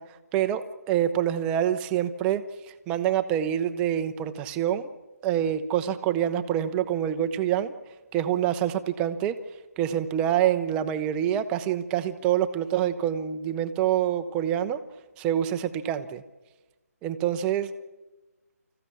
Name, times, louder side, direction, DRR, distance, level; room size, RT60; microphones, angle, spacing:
voice 1, 0.0-4.9 5.2-7.7 8.1-9.4 9.8-14.8 15.2-16.2 17.0-17.7, right 10 dB, 10° right, 10 dB, 0.6 m, -26 dB
26.5 x 15.0 x 8.5 m, 1.1 s
figure-of-eight pair, 160°, 9 cm